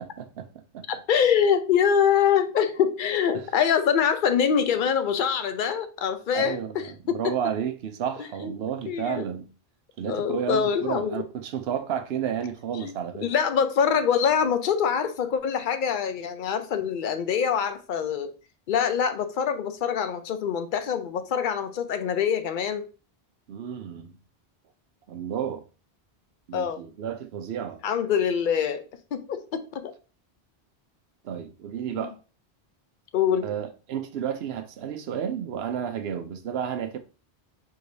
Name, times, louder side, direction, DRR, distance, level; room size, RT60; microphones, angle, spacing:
voice 1, 0.2-0.9 3.3-3.5 6.3-9.5 10.0-13.3 23.5-24.2 25.1-25.6 26.5-27.8 31.2-32.2 33.4-37.0, right 8 dB, 70° right, 0.8 m, -32 dB
voice 2, 1.1-7.3 8.2-8.5 8.9-9.2 10.1-11.2 12.8-12.9 13.2-18.3 18.7-22.9 26.5-26.8 27.8-28.8 29.1-29.9 33.1-33.5, left 7 dB, 55° left, 0.6 m, -24 dB
4.7 x 3.7 x 2.6 m
omnidirectional pair, 1.1 m